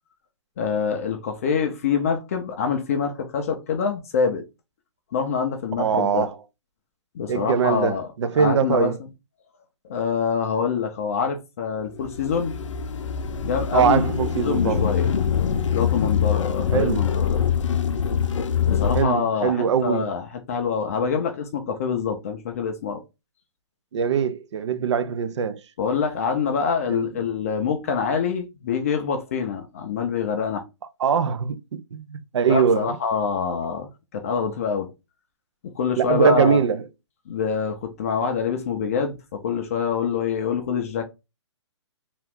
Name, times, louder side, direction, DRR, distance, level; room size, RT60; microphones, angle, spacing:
voice 1, 0.6-4.4 5.1-6.3 7.1-8.1 8.3-8.9 9.9-12.5 13.4-14.0 14.4-15.1 15.7-17.4 18.7-23.0 25.8-30.6 32.5-34.9 35.8-36.6 37.3-41.0, left 6 dB, 30° left, 0.4 m, -25 dB
voice 2, 5.8-6.3 7.3-9.0 13.7-14.9 16.7-17.1 18.9-20.1 23.9-25.6 26.9-27.1 31.0-33.0 36.0-36.8, right 7 dB, 70° right, 0.4 m, -22 dB
sound 1, 12.0-19.0, left 7 dB, 85° left, 0.5 m, -24 dB
2.9 x 2.4 x 3.4 m
hypercardioid pair, 160°, 16 cm